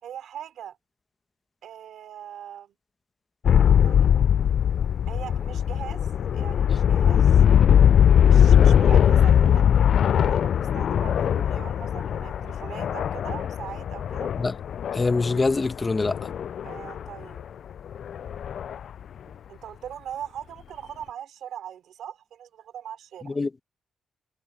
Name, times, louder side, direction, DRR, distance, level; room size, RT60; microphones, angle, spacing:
voice 1, 0.0-0.8 1.6-2.7 3.8-4.1 5.1-6.0 6.3-7.4 8.2-9.7 10.1-14.3 16.6-17.4 19.3-23.4, right 10 dB, 80° right, 3.9 m, -40 dB
sound 1, 3.4-17.1 17.4-17.5 17.9-18.8, left 9 dB, 70° left, 0.3 m, -20 dB
voice 2, 14.9-16.2 23.2-23.6, left 3 dB, 30° left, 1.4 m, -24 dB
cardioid pair, 70°, 0 cm